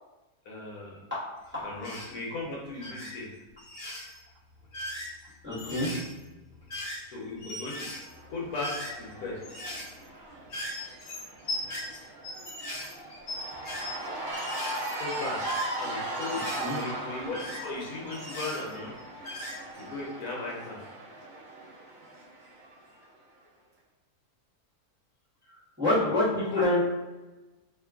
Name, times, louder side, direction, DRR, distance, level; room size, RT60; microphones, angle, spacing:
voice 1, 0.5-1.0 1.6-3.3 7.0-7.8 8.3-9.4 14.9-15.4 15.8-18.9 19.8-20.8 26.0-26.7, left 3 dB, 80° left, -2 dB, 1.1 m, -37 dB
voice 2, 1.1-1.7 5.4-5.9 16.6-16.8 25.5-26.9, left 1 dB, 10° right, -12 dB, 0.8 m, -27 dB
sound 1, 1.8-2.1 2.7-3.1 3.6-4.2 4.6-7.1 7.4-9.1 9.4-10.0 10.5-14.0 14.3-16.8 17.3-19.0 19.2-19.8, left 1 dB, 55° left, 1.1 m, -39 dB
Cheering / Crowd, 7.7-23.0, right 1 dB, 55° right, 0.8 m, -39 dB
2.8 x 2.2 x 2.2 m, 1.1 s
omnidirectional pair, 1.6 m